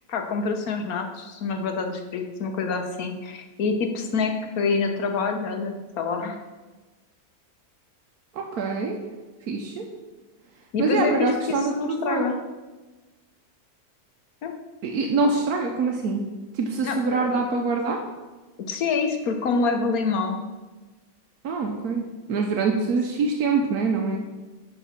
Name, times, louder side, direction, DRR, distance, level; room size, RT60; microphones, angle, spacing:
voice 1, 0.1-6.4 10.7-11.3 11.8-12.3 14.4-14.5 16.8-17.4 18.7-20.4, left 4 dB, 75° left, 5 dB, 1.5 m, -26 dB
voice 2, 8.3-9.0 9.5-9.8 10.8-12.2 14.8-16.3 16.5-18.0 21.4-22.0 22.3-24.2, right 4 dB, 85° right, 1 dB, 1.3 m, -24 dB
10.0 x 4.2 x 5.8 m, 1.2 s
omnidirectional pair, 1.6 m